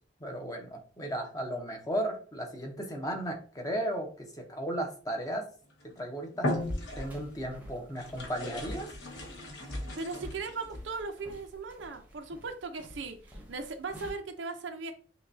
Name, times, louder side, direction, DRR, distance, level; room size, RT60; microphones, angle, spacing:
voice 1, 0.2-5.5 6.0-6.5 7.0-8.9, right 1 dB, 20° left, 3 dB, 0.8 m, -35 dB
sound 1, 5.7-5.9 6.3-7.4 7.9-10.7, left 1 dB, 70° left, 1.1 m, -37 dB
sound 2, 6.5-14.1, equal, 10° right, 0.9 m, -45 dB
voice 2, 10.0-14.9, right 4 dB, 85° right, 6 dB, 0.6 m, -38 dB
5.7 x 2.3 x 2.7 m, 0.40 s
head